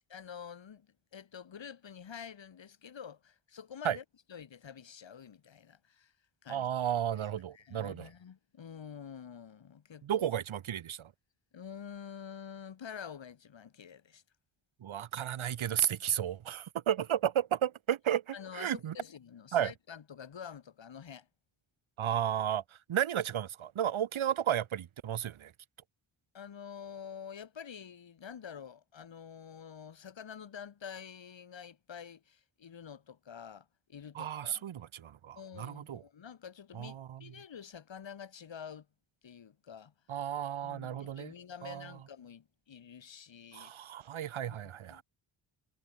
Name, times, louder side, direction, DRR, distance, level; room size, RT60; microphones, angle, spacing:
voice 1, 0.1-4.0 4.3-6.1 6.4-6.7 7.2-7.3 7.5-10.3 11.5-14.2 18.3-21.3 26.3-34.6 35.4-38.9 39.2-39.9 40.6-43.7 44.4-44.6 44.9-45.0, left 7 dB, 65° left, 4.2 m, -48 dB
voice 2, 6.5-8.1 10.0-11.1 14.8-19.0 19.5-19.7 22.0-22.6 22.9-25.5 34.2-36.0 36.7-37.2 40.1-41.3 41.6-41.9 43.5-45.0, right 10 dB, 80° right, 2.0 m, -33 dB
cardioid pair, 75°, 47 cm